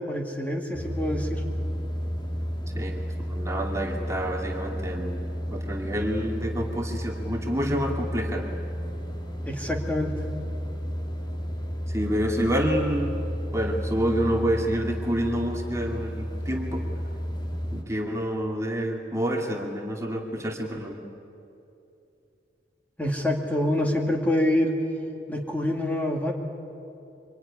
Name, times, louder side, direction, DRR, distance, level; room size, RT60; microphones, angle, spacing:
voice 1, 0.0-1.4 9.4-10.2 23.0-24.8 25.3-26.3, left 1 dB, 10° left, 1 dB, 2.4 m, -26 dB
sound 1, 0.7-17.8, equal, 25° left, 2.2 m, -32 dB
voice 2, 2.8-5.3 5.5-8.6 11.9-13.1 13.5-16.9 17.7-21.0, equal, 15° right, 0 dB, 2.2 m, -28 dB
25.0 x 23.5 x 9.9 m, 2.8 s
head